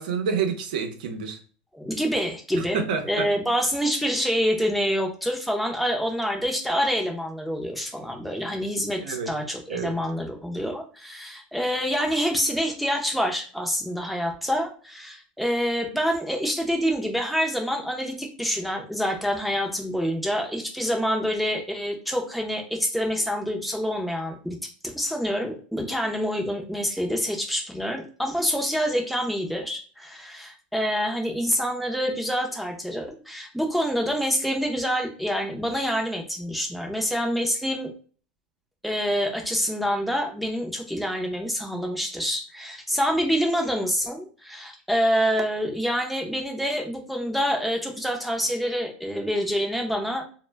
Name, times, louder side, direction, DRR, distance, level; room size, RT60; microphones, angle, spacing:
voice 1, 0.0-1.4 2.5-3.3 9.0-9.3 9.7-9.9, right 6 dB, 80° right, 5 dB, 0.6 m, -28 dB
voice 2, 1.7-24.6 24.8-37.9 38.8-50.2, equal, ahead, 2 dB, 0.5 m, -27 dB
2.1 x 2.1 x 3.3 m, 0.41 s
supercardioid pair, 125°, 4 cm